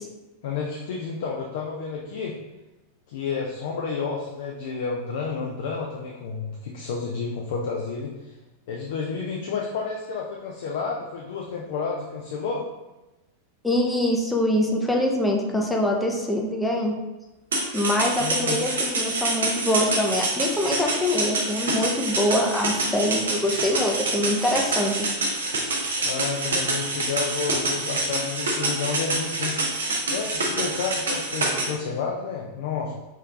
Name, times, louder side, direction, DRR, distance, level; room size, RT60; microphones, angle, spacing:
voice 1, 0.4-2.4 3.1-8.3 8.7-12.6 18.2-18.6 26.0-29.5 30.1-32.9, left 5 dB, 55° left, -1 dB, 0.5 m, -30 dB
voice 2, 13.6-16.9 17.7-25.1, left 1 dB, 5° left, 0 dB, 0.6 m, -24 dB
sound 1, 17.5-31.7, right 2 dB, 65° right, 0.8 m, -26 dB
5.6 x 3.2 x 2.4 m, 1.1 s
figure-of-eight pair, 90°, 0 cm